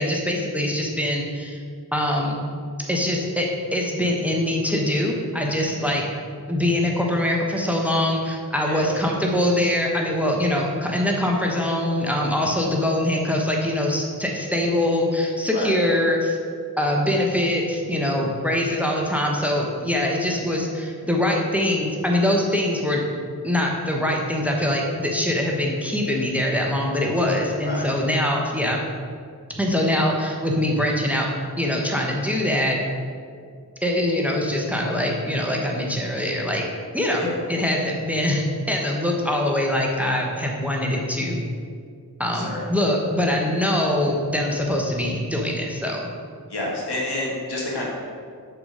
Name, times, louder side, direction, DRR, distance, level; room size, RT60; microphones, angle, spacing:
voice 1, 0.0-1.6 1.9-2.4 2.9-6.0 6.5-16.4 16.8-23.0 23.4-28.8 29.6-31.3 31.6-32.8 33.8-36.6 36.9-41.4 42.2-46.0, left 1 dB, 5° right, -1 dB, 1.0 m, -23 dB
voice 2, 5.7-6.0 8.6-8.8 15.5-15.7 18.9-19.0 27.6-27.9 37.2-37.4 42.3-42.7 46.5-47.9, left 1 dB, 75° left, -4 dB, 1.8 m, -30 dB
6.7 x 4.2 x 4.9 m, 2.2 s
cardioid pair, 45°, 40 cm